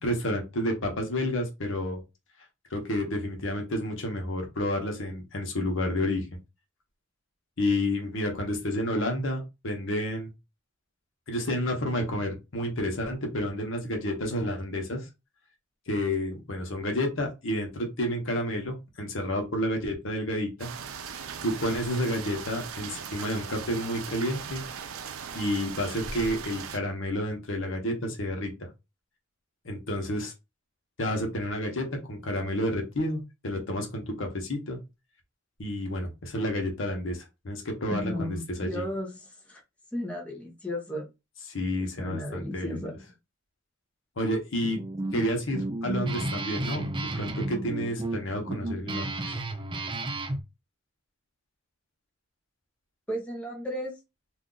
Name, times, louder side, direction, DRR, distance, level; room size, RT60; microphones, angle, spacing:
voice 1, 0.0-2.0 2.7-6.3 7.6-10.3 11.3-15.1 15.9-20.7 21.4-24.6 25.3-28.5 29.6-30.3 31.0-34.8 35.6-38.9 41.5-42.8 44.2-44.8 45.1-49.1, left 1 dB, 70° left, 3 dB, 1.0 m, -30 dB
sound 1, 20.6-26.8, right 6 dB, 90° right, 0.5 m, -39 dB
voice 2, 37.9-39.1 39.5-39.6 39.9-41.1 42.0-43.0 53.1-53.9, left 1 dB, 5° left, -2 dB, 0.8 m, -34 dB
Guitar, 44.6-50.4, right 2 dB, 25° right, 0.4 m, -33 dB
2.6 x 2.4 x 3.8 m, 0.25 s
head